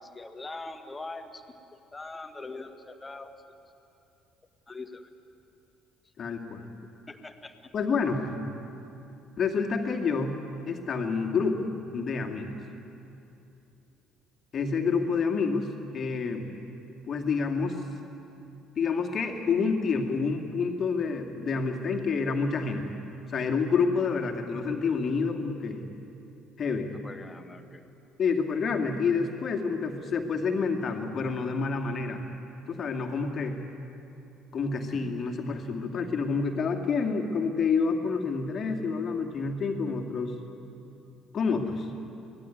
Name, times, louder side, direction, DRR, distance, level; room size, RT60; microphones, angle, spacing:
voice 1, 0.0-1.4 1.7-3.3 4.7-5.1 7.1-7.6 26.9-27.9, left 3 dB, 20° left, 7 dB, 1.8 m, -42 dB
voice 2, 6.2-6.7 7.7-8.4 9.4-12.6 14.5-16.5 17.1-17.8 18.8-22.8 23.3-25.8 26.6-26.9 28.2-32.2 32.7-33.6 34.5-40.3 41.3-41.9, left 5 dB, 40° left, 3 dB, 2.5 m, -28 dB
24.0 x 17.5 x 9.5 m, 2.8 s
figure-of-eight pair, 55°, 0 cm